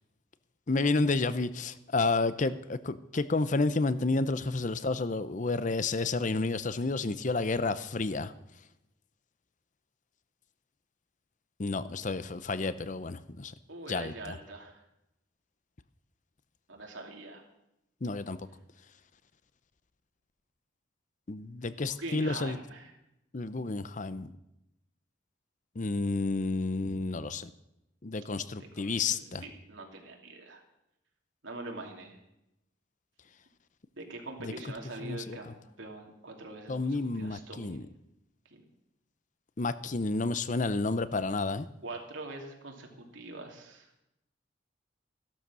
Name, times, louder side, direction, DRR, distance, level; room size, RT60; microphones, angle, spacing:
voice 1, 0.7-8.3 11.6-13.5 13.9-14.3 18.0-18.4 21.3-22.6 23.3-24.3 25.8-27.5 28.0-29.4 34.4-34.5 35.0-35.5 36.7-37.9 39.6-41.7, left 3 dB, 40° left, 14 dB, 0.7 m, -30 dB
voice 2, 13.7-14.8 16.7-17.4 21.9-22.9 28.6-30.6 31.4-32.2 34.0-37.8 38.5-38.7 41.8-43.9, right 2 dB, 85° right, 1 dB, 2.9 m, -44 dB
15.0 x 12.0 x 6.3 m, 0.87 s
head